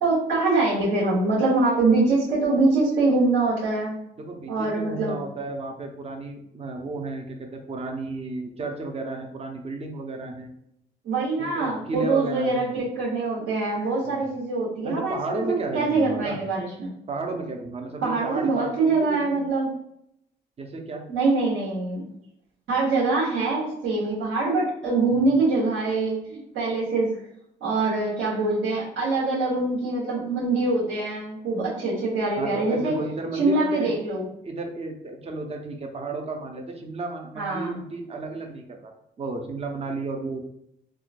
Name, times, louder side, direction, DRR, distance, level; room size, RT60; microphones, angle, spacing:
voice 1, 0.0-4.0 4.5-5.2 11.0-16.9 18.0-19.7 21.1-22.0 22.7-27.1 27.6-32.9 33.3-34.3 37.3-37.8, right 3 dB, 75° right, -9 dB, 1.2 m, -24 dB
voice 2, 4.3-10.5 11.4-12.7 14.0-14.2 14.8-16.4 17.1-19.4 20.6-21.0 25.1-25.2 32.4-33.9 34.4-38.9 39.2-40.4, right 3 dB, 30° right, 3 dB, 0.6 m, -33 dB
3.6 x 2.3 x 2.5 m, 0.75 s
cardioid pair, 90°, 20 cm